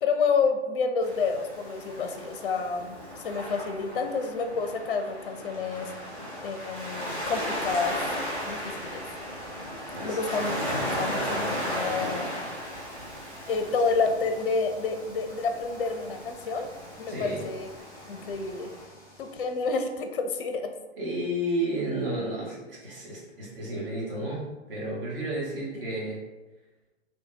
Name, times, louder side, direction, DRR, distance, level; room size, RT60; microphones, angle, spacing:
voice 1, 0.0-6.1 6.4-8.0 8.4-9.0 10.0-12.3 13.5-16.7 17.0-17.7 18.1-18.7 19.2-20.7 25.7-25.9, left 4 dB, 55° left, 6 dB, 0.5 m, -29 dB
Waves surf, 1.0-18.8, equal, 25° right, 1.2 m, -36 dB
sound 1, 5.5-20.1, left 1 dB, 10° left, 0.8 m, -51 dB
voice 2, 17.1-17.4 21.0-26.2, right 1 dB, 55° right, -5 dB, 1.4 m, -32 dB
3.4 x 2.7 x 2.7 m, 1.1 s
figure-of-eight pair, 120°, 33 cm